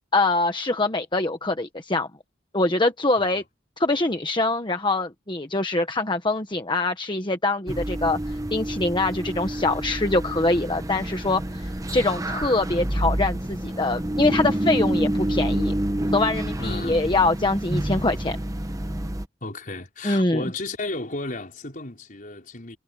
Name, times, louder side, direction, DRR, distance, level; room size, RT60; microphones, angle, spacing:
voice 1, 0.1-2.1 2.5-3.4 3.8-15.7 16.1-18.4 20.0-20.4, left 2 dB, 25° left, 1.3 m, -24 dB
sound 1, 7.7-19.3, right 1 dB, 20° right, 1.1 m, -28 dB
voice 2, 16.6-17.0 19.4-22.8, left 2 dB, 45° left, 4.9 m, -33 dB
head